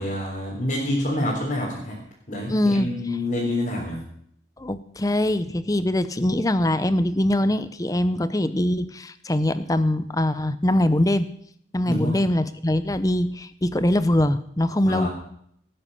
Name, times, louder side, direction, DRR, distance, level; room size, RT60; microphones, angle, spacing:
voice 1, 0.0-2.0 2.3-4.0 11.9-12.2 14.9-15.1, left 1 dB, 40° left, -4 dB, 3.7 m, -27 dB
voice 2, 2.5-2.9 4.6-11.3 11.7-15.1, left 1 dB, 20° left, 13 dB, 0.7 m, -22 dB
18.0 x 9.8 x 5.6 m, 0.69 s
head